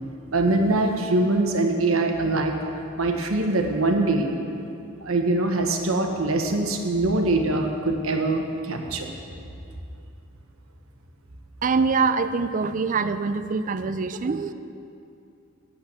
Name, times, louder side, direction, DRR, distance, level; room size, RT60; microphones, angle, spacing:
voice 1, 0.3-2.6 3.0-4.3 5.0-9.1, right 2 dB, 75° right, 3 dB, 1.2 m, -23 dB
voice 2, 11.6-14.5, right 4 dB, 40° right, 12 dB, 0.4 m, -24 dB
8.7 x 8.5 x 8.3 m, 2.6 s
head